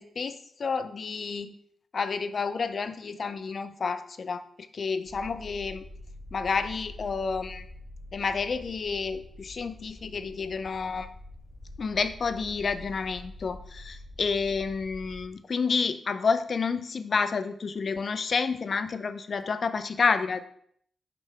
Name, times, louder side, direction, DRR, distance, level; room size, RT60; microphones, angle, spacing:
voice 1, 0.0-1.5 1.9-4.4 4.7-5.8 6.3-7.6 8.1-11.1 11.8-20.5, left 5 dB, 60° left, 11 dB, 0.5 m, -30 dB
sound 1, 5.1-15.3, left 1 dB, 5° left, 1.5 m, -46 dB
5.9 x 5.4 x 4.4 m, 0.65 s
cardioid pair, 55°, 0 cm